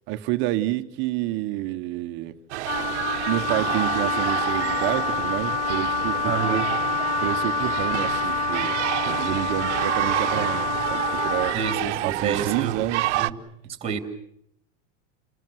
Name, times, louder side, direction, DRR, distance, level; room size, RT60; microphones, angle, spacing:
voice 1, 0.1-2.8 3.3-6.7 7.2-8.8 9.1-11.6 12.0-13.1, right 15 dB, 30° right, 1.1 m, -29 dB
sound 1, 2.5-13.3, right 16 dB, 70° right, 1.1 m, -29 dB
Wind instrument woodwind instrument, 2.6-11.8, left 4 dB, 20° left, 1.9 m, -27 dB
voice 2, 6.3-6.7 11.5-12.8 13.2-13.4 13.8-14.0, right 6 dB, 15° right, 2.4 m, -28 dB
29.5 x 20.5 x 7.9 m
supercardioid pair, 175°, 36 cm